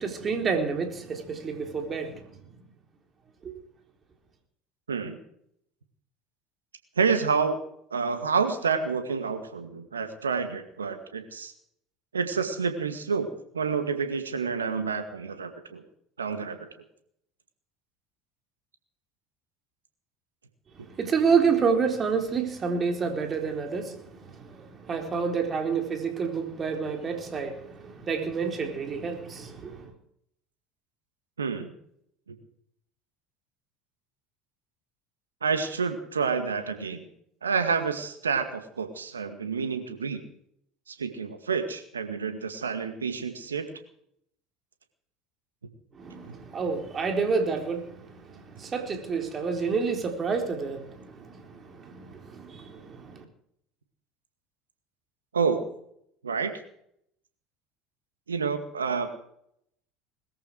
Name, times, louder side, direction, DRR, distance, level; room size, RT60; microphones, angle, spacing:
voice 1, 0.0-2.4 3.4-3.5 20.8-29.9 45.9-53.2, right 5 dB, 35° right, 4.0 m, -29 dB
voice 2, 4.9-5.2 7.0-7.6 7.9-11.5 12.1-13.3 13.5-15.8 16.2-16.7 31.4-31.7 32.3-32.4 35.4-37.1 37.4-40.2 40.9-43.7 46.2-46.3 55.3-55.6 56.2-56.5 58.3-59.1, right 5 dB, 90° right, 2.0 m, -28 dB
21.0 x 14.0 x 4.8 m
hypercardioid pair, 70°, 0 cm